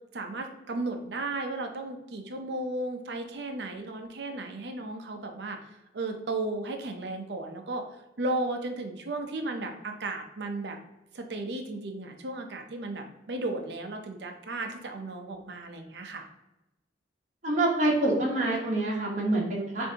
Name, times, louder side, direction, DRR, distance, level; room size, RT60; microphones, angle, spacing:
voice 1, 0.1-5.6 5.9-7.8 8.2-10.8 11.1-16.3, right 2 dB, 70° right, 4 dB, 0.6 m, -34 dB
voice 2, 17.4-19.9, right 2 dB, 40° right, -4 dB, 1.0 m, -26 dB
6.9 x 2.6 x 2.8 m, 0.94 s
head